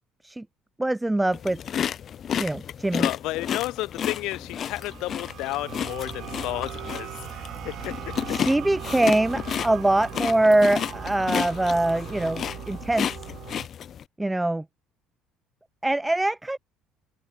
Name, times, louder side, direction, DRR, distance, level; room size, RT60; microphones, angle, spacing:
voice 1, 0.8-1.6 2.4-3.1 8.3-13.1 14.2-14.6 15.8-16.6, right 2 dB, 5° right, 1.7 m, -23 dB
sound 1, 1.3-14.0, left 9 dB, 35° left, 2.1 m, -32 dB
voice 2, 3.0-8.4, left 18 dB, 70° left, 7.7 m, -32 dB
sound 2, 4.3-13.7, right 12 dB, 50° right, 7.4 m, -39 dB
cardioid pair, 160°, 0 cm